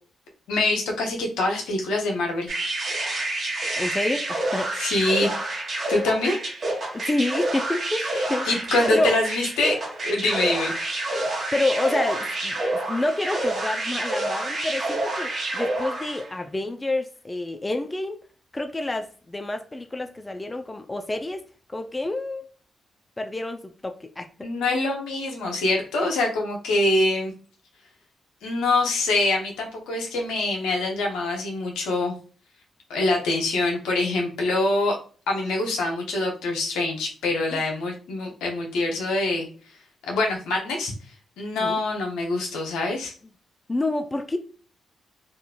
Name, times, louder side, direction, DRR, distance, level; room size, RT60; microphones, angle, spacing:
voice 1, 0.5-2.5 4.8-5.3 5.9-6.4 8.1-10.7 24.4-27.3 28.4-32.2 32.9-35.0 35.3-39.5 40.1-40.9 41.4-43.1, left 2 dB, 80° left, 0.7 m, -25 dB
sound 1, 2.5-16.3, right 2 dB, 55° right, 1.2 m, -28 dB
voice 2, 3.6-4.7 6.9-8.5 8.9-9.2 11.3-18.2 18.5-21.4 21.7-22.5 23.2-24.5 37.5-37.6 41.6-41.8 43.7-44.4, left 2 dB, 25° left, 0.3 m, -28 dB
2.9 x 2.4 x 2.2 m
hypercardioid pair, 40°, 0 cm